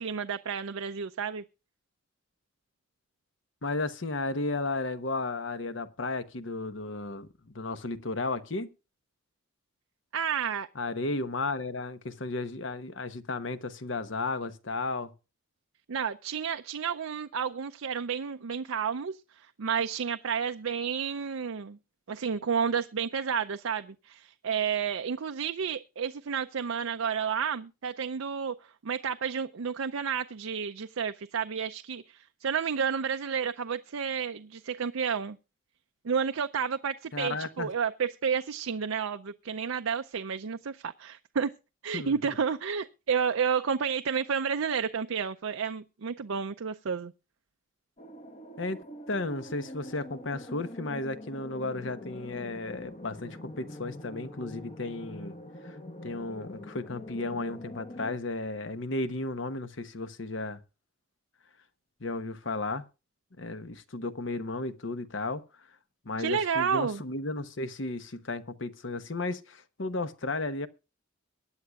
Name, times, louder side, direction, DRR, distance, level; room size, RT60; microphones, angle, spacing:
voice 1, 0.0-1.4 10.1-10.7 15.9-21.8 22.1-28.6 28.8-35.4 36.0-41.5 41.8-47.1 66.2-67.0, right 6 dB, 90° right, 0.5 m, -31 dB
voice 2, 3.6-8.7 10.7-15.1 37.1-37.7 41.9-42.4 48.6-55.4 55.6-55.8 56.0-60.6 62.0-62.9 63.4-65.4 66.0-70.7, left 2 dB, 65° left, 1.0 m, -34 dB
sound 1, 48.0-58.2, left 1 dB, 35° left, 1.0 m, -44 dB
23.0 x 9.7 x 2.4 m
head